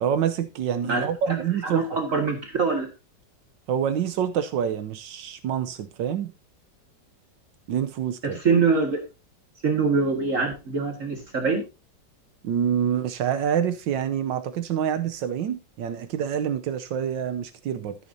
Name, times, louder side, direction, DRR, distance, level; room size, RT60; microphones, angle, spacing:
voice 1, 0.0-1.9 3.7-6.3 7.7-8.4 12.4-18.0, right 8 dB, 85° right, 1.5 m, -26 dB
voice 2, 1.6-2.9 8.2-9.0 9.6-11.6, right 4 dB, 45° right, 2.0 m, -24 dB
13.5 x 9.5 x 2.7 m
omnidirectional pair, 1.9 m